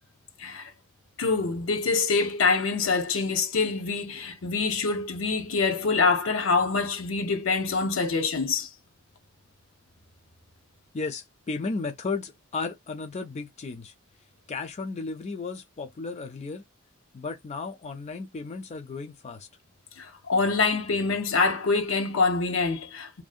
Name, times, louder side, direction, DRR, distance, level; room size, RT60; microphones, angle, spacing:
voice 1, 0.4-0.7 1.2-8.7 20.0-23.2, left 4 dB, 70° left, 0.7 m, -25 dB
voice 2, 10.9-13.9 14.5-16.6 17.1-19.5, left 4 dB, 35° left, 0.4 m, -34 dB
2.6 x 2.0 x 2.4 m
head